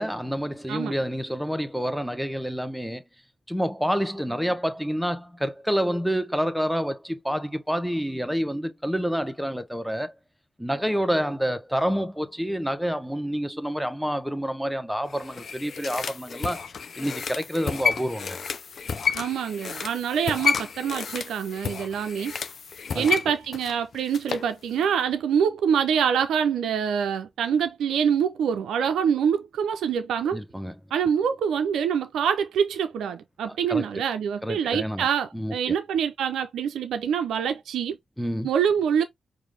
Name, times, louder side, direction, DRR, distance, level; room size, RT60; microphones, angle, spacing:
voice 1, 0.0-3.0 3.5-10.1 10.6-16.6 17.0-18.4 22.9-23.1 30.3-30.7 33.5-34.0 34.4-35.1 35.3-35.8 38.2-38.5, equal, ahead, 1.0 m, -28 dB
sound 1, 15.1-24.5 24.8-24.9, left 6 dB, 70° left, 0.5 m, -31 dB
voice 2, 19.1-22.3 22.9-30.4 30.9-38.0 38.4-39.0, right 7 dB, 85° right, 0.4 m, -25 dB
4.8 x 2.5 x 3.2 m
supercardioid pair, 40°, 0 cm